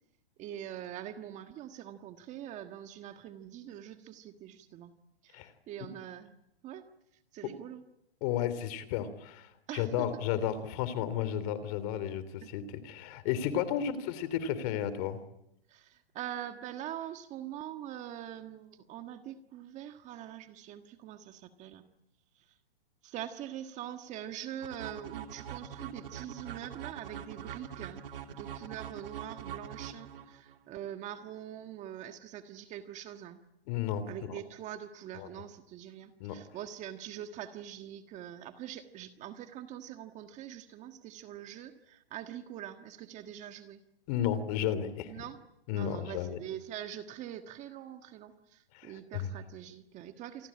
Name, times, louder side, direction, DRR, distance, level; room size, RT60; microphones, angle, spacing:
voice 1, 0.4-4.9 5.2-6.3 6.6-6.8 7.3-7.8 9.7-10.1 13.5-13.6 15.7-21.9 22.3-22.5 23.0-28.1 28.3-33.4 34.1-43.8 45.1-45.4 45.7-50.5, right 11 dB, 25° right, 8 dB, 1.5 m, -43 dB
voice 2, 8.2-15.2 33.7-34.4 35.2-35.3 36.2-36.4 44.1-45.2 45.7-46.4 48.7-49.3, left 10 dB, 40° left, 14 dB, 3.2 m, -33 dB
sound 1, 24.6-30.6, right 9 dB, 65° right, 2.9 m, -43 dB
28.5 x 21.0 x 8.7 m, 0.81 s
hypercardioid pair, 140°, 30 cm